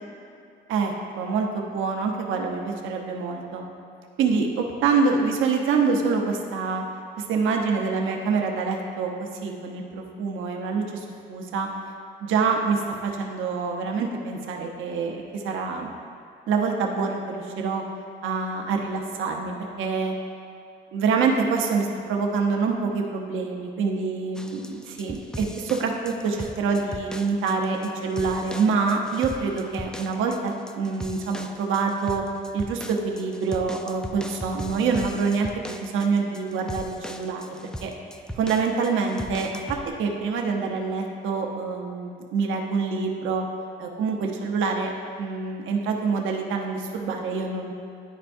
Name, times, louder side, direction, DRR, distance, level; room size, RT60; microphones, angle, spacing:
voice 1, 0.7-3.6 4.2-6.8 7.2-11.7 12.2-15.9 16.5-17.8 18.2-20.1 20.9-32.2 32.5-37.9 38.4-43.5 43.8-44.9 45.2-47.7, right 4 dB, 80° right, 2 dB, 0.8 m, -26 dB
sound 1, 24.4-39.9, equal, 5° left, 0.4 m, -39 dB
11.0 x 4.5 x 2.6 m, 2.5 s
cardioid pair, 90°, 20 cm